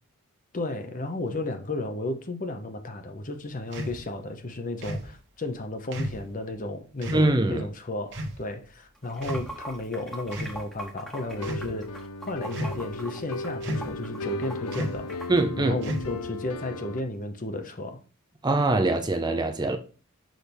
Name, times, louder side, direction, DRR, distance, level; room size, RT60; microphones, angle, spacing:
voice 1, 0.5-15.1 15.6-18.0, left 2 dB, 35° left, 0.8 m, -33 dB
sound 1, 3.7-4.0 4.8-5.1 5.9-6.2 7.0-7.3 8.1-8.4 9.2-9.7 10.3-10.6 11.3-11.7 12.5-12.9 13.6-14.0 14.7-15.1 15.8-16.3, equal, 55° right, 1.2 m, -33 dB
voice 2, 7.1-7.7 15.3-15.8 18.4-19.8, right 2 dB, 20° right, 0.6 m, -23 dB
Water / Sink (filling or washing), 9.0-15.4, right 1 dB, ahead, 1.0 m, -41 dB
sound 2, 11.2-17.0, left 3 dB, 80° left, 0.5 m, -36 dB
6.4 x 5.8 x 3.4 m
head